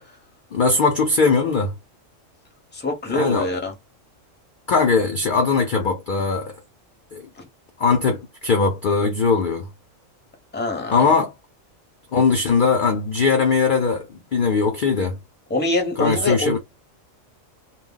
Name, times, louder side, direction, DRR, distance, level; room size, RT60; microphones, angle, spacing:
voice 1, 0.5-1.7 3.1-3.5 4.7-6.5 7.1-7.2 7.8-9.7 10.9-11.3 12.1-15.2 16.0-16.6, left 4 dB, 55° left, 0.6 m, -20 dB
voice 2, 2.7-3.7 7.4-7.5 10.5-11.0 15.5-16.6, left 2 dB, 10° left, 0.7 m, -24 dB
2.2 x 2.1 x 3.7 m
omnidirectional pair, 1.4 m